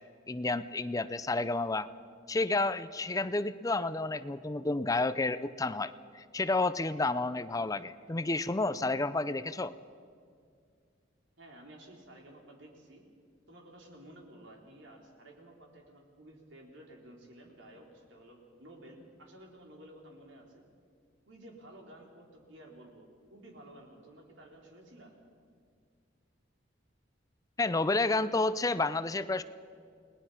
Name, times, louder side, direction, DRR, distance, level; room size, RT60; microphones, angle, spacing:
voice 1, 0.3-1.9 2.3-9.7 27.6-29.4, left 3 dB, 20° left, 14 dB, 0.5 m, -30 dB
voice 2, 11.4-13.0 13.5-20.6 21.3-25.1, right 1 dB, 80° right, 0 dB, 4.2 m, -53 dB
29.0 x 20.0 x 5.8 m, 2.2 s
head